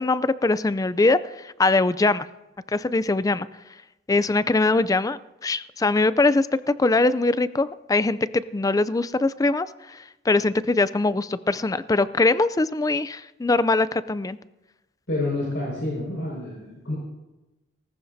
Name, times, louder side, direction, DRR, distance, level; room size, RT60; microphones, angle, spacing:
voice 1, 0.0-2.3 2.7-3.5 4.1-6.5 6.8-14.4, left 3 dB, 20° left, 16 dB, 0.4 m, -22 dB
voice 2, 15.1-17.0, left 2 dB, 70° left, -5 dB, 5.3 m, -28 dB
19.5 x 17.5 x 2.7 m, 1.0 s
head